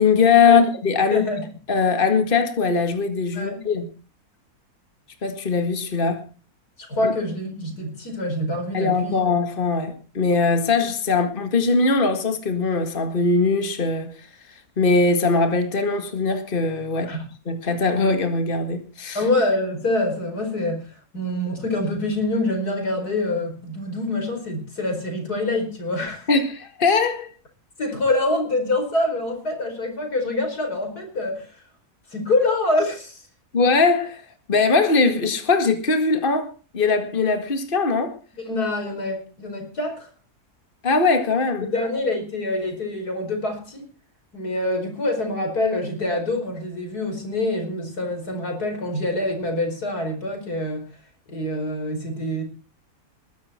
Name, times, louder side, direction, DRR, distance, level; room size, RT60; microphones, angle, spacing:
voice 1, 0.0-1.2 1.7-3.9 5.2-6.2 7.0-7.1 8.7-14.1 14.8-17.1 17.5-19.2 26.3-27.3 33.5-34.2 34.5-38.1 40.8-41.7, left 4 dB, 35° left, 2.1 m, -21 dB
voice 2, 1.1-1.5 3.3-3.6 6.8-9.2 17.1-17.3 19.2-26.3 27.8-31.5 32.1-33.2 38.3-40.1 41.7-43.9 44.3-50.9 51.3-52.4, left 2 dB, 85° left, 5.3 m, -25 dB
21.0 x 11.5 x 4.4 m
omnidirectional pair, 1.6 m